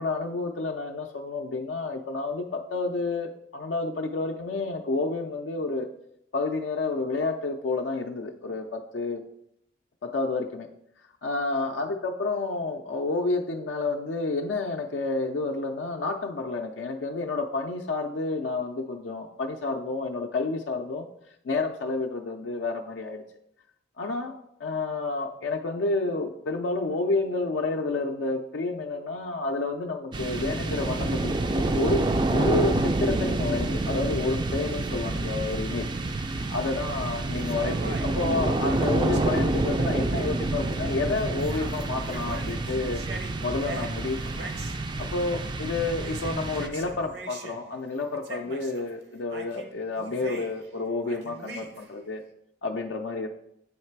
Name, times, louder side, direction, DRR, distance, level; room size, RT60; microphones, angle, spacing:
voice 1, 0.0-5.9 6.3-9.2 10.0-10.7 11.2-21.1 21.4-23.2 24.0-24.3 24.6-32.0 32.3-35.9 36.3-43.0 43.4-44.5 45.0-52.2 52.6-53.3, left 3 dB, 75° left, 3 dB, 0.4 m, -30 dB
sound 1, 30.1-47.1, right 2 dB, 25° right, 0.3 m, -28 dB
sound 2, 37.6-39.5 40.2-40.3 40.7-40.9 41.2-44.8 45.9-47.6 48.0-48.9 49.3-50.7 51.0-52.0, right 3 dB, 60° right, 0.7 m, -42 dB
7.9 x 3.2 x 4.5 m, 0.77 s
head